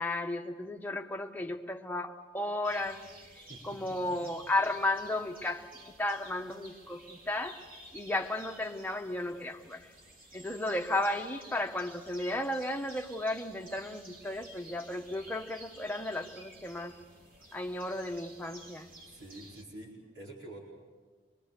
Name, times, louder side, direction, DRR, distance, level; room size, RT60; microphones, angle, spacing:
voice 1, 0.0-3.0 3.6-7.6 7.9-9.9 10.3-16.9 17.5-18.9, left 1 dB, 10° left, 3 dB, 1.1 m, -34 dB
sound 1, 2.6-19.6, right 1 dB, 50° right, 2.7 m, -53 dB
voice 2, 19.1-20.6, right 1 dB, 80° right, -5 dB, 4.8 m, -47 dB
26.0 x 22.0 x 6.8 m, 1.5 s
head